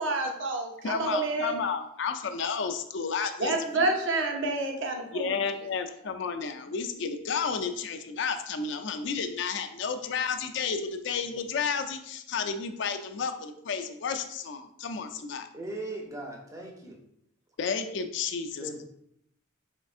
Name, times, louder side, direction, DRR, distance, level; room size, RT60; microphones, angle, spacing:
voice 1, 0.0-1.5 3.4-5.3, right 2 dB, 65° right, 2 dB, 0.6 m, -29 dB
voice 2, 0.8-3.8 5.1-15.5 17.6-18.8, left 5 dB, 60° left, 7 dB, 0.4 m, -32 dB
voice 3, 15.5-17.0 18.6-18.8, right 2 dB, 15° right, 1 dB, 0.5 m, -38 dB
4.4 x 3.4 x 2.4 m, 0.75 s
head